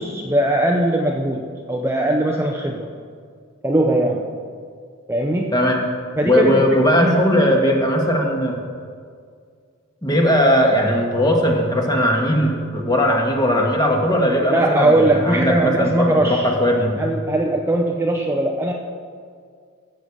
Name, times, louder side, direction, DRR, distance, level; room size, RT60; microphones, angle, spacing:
voice 1, 0.0-2.9 3.6-4.3 5.1-5.6 6.2-6.6 7.0-7.2 14.5-16.5 17.0-18.7, right 1 dB, 10° right, 2 dB, 0.6 m, -20 dB
voice 2, 6.2-8.6 10.0-17.0, equal, 20° left, 1 dB, 1.6 m, -18 dB
14.5 x 6.7 x 7.2 m, 2.1 s
head